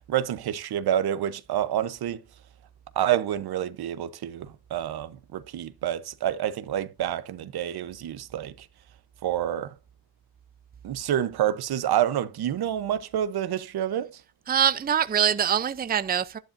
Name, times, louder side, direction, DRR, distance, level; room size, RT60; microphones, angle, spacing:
voice 1, 0.0-2.2 2.9-8.7 9.2-9.7 10.8-14.2, right 11 dB, 75° right, 0.9 m, -28 dB
voice 2, 14.5-16.4, right 8 dB, 25° right, 0.5 m, -24 dB
11.5 x 10.5 x 2.6 m
cardioid pair, 95°, 38 cm